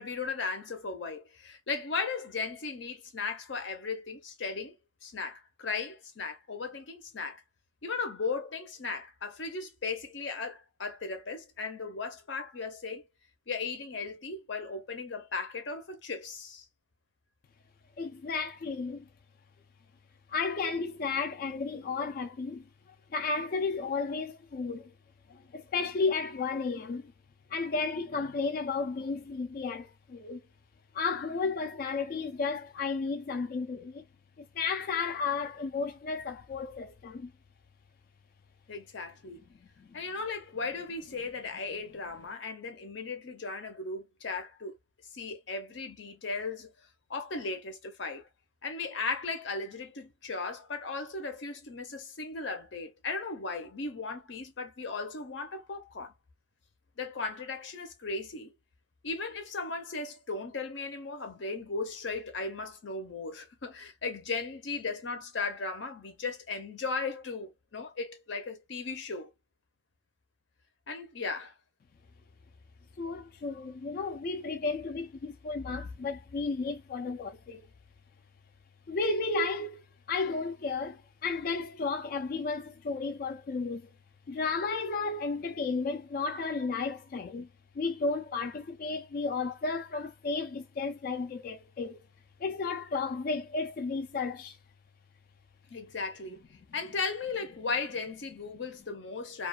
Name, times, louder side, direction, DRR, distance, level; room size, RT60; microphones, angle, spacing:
voice 1, 0.0-4.7 5.0-7.4 7.8-13.0 13.5-16.7 38.7-39.4 39.9-44.8 45.1-46.7 47.1-48.3 48.6-56.1 57.0-58.5 59.0-69.3 70.9-71.5 95.7-99.5, left 4 dB, 65° left, 0.7 m, -36 dB
voice 2, 18.0-19.1 20.3-24.9 25.3-27.1 27.5-30.4 30.9-34.0 34.4-37.3 39.8-39.9 73.0-77.7 78.9-83.9 84.3-87.5 87.8-92.0 92.4-94.6, left 4 dB, 50° left, 0.3 m, -33 dB
2.3 x 2.3 x 2.3 m
head